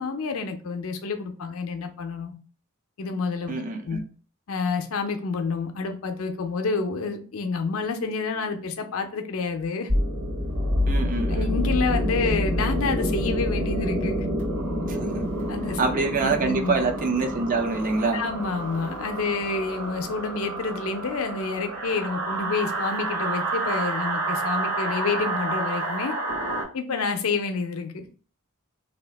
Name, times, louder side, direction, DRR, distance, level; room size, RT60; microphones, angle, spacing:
voice 1, 0.0-2.3 3.0-3.5 3.9-4.0 4.5-9.9 11.3-14.3 15.5-15.8 16.2-16.8 18.1-26.1 26.7-28.1, left 4 dB, 65° left, 0.5 m, -28 dB
voice 2, 3.5-4.0 10.9-11.5 14.9-15.2 15.8-18.2, right 3 dB, 35° right, 0.5 m, -25 dB
sound 1, 9.9-26.6, right 1 dB, 60° right, 1.4 m, -28 dB
2.7 x 2.4 x 3.3 m
head